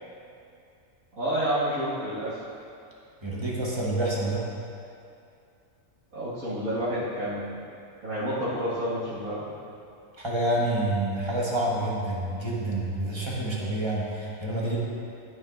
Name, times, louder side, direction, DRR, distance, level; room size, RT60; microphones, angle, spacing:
voice 1, 1.1-2.4 6.1-7.6 8.0-9.6, equal, 75° right, -12 dB, 2.1 m, -29 dB
voice 2, 3.2-4.5 10.2-14.8, right 1 dB, 20° right, -5 dB, 1.2 m, -28 dB
12.5 x 6.1 x 2.5 m, 2.5 s
omnidirectional pair, 1.4 m